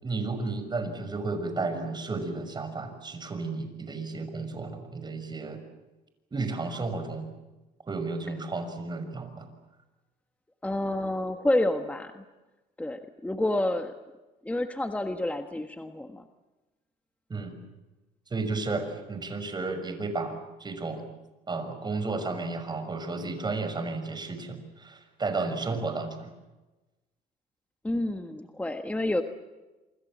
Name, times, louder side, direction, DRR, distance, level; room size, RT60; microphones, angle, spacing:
voice 1, 0.0-5.6 6.3-7.3 7.9-9.5 17.3-17.6 18.3-21.0 21.5-26.3, right 3 dB, 25° right, 8 dB, 6.0 m, -33 dB
voice 2, 10.6-12.2 12.8-13.9 14.4-16.2 27.8-29.2, left 1 dB, 10° left, 7 dB, 1.6 m, -29 dB
27.5 x 25.0 x 7.6 m, 1.1 s
cardioid pair, 110°, 17 cm